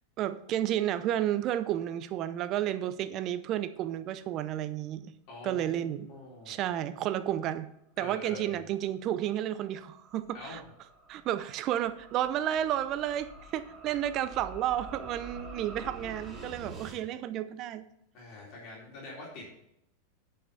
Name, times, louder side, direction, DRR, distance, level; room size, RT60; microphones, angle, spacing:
voice 1, 0.2-5.1 5.4-6.1 6.5-7.7 8.0-10.6 11.1-17.8, right 11 dB, 45° right, 13 dB, 0.7 m, -31 dB
voice 2, 5.3-6.6 8.0-8.6 10.3-10.7 18.1-19.5, left 2 dB, 50° left, -3 dB, 3.6 m, -45 dB
sound 1, 9.4-17.0, right 1 dB, 20° right, 2.5 m, -48 dB
9.4 x 5.8 x 5.5 m, 0.79 s
hypercardioid pair, 110°, 0 cm